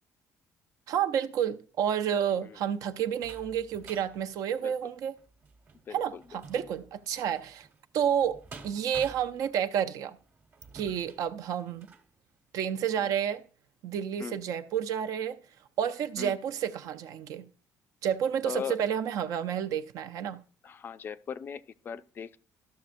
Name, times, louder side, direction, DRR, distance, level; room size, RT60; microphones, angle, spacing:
voice 1, 0.9-5.1 5.9-7.7 7.9-10.2 10.7-11.9 12.5-13.4 13.8-15.4 15.8-17.5 18.0-20.4, right 9 dB, 75° right, 0.5 m, -30 dB
sound 1, 2.3-12.1 12.7-12.8 13.1-13.2, right 4 dB, 35° right, 1.1 m, -52 dB
voice 2, 5.9-6.2 13.0-13.1 14.2-14.4 16.2-16.3 18.4-18.8 20.6-22.4, left 7 dB, 35° left, 0.3 m, -39 dB
13.0 x 6.3 x 2.5 m
cardioid pair, 150°, 6 cm